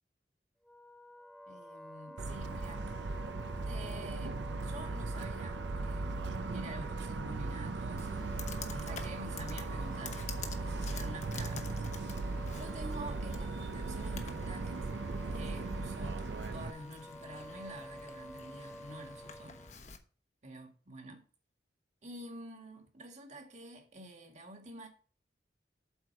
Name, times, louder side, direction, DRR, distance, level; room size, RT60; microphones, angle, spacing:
Wind instrument woodwind instrument, 0.6-19.7, equal, 5° left, 0.3 m, -51 dB
voice 1, 1.5-2.8 3.7-4.4 4.6-8.2 8.7-10.3 10.6-12.0 12.5-14.9 15.3-16.2 16.5-19.6 20.4-21.2 22.0-24.9, right 1 dB, 45° right, 1.9 m, -48 dB
Motor vehicle (road) / Siren, 2.2-16.7, right 3 dB, 80° right, 0.6 m, -38 dB
Computer keyboard, 8.0-20.0, left 5 dB, 40° left, 1.1 m, -49 dB
8.1 x 4.7 x 7.1 m
head